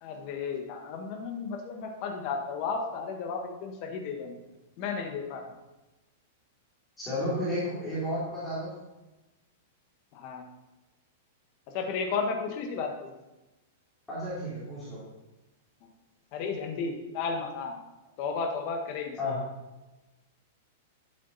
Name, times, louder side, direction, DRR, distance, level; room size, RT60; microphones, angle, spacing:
voice 1, 0.0-4.4 4.8-5.4 10.1-10.5 11.7-13.1 16.3-17.8 18.2-19.2, left 5 dB, 35° left, 3 dB, 1.5 m, -33 dB
voice 2, 7.0-8.7 14.1-15.0 19.2-19.4, left 1 dB, 5° left, -12 dB, 3.6 m, -32 dB
12.0 x 7.6 x 4.2 m, 1.1 s
supercardioid pair, 170°, 0 cm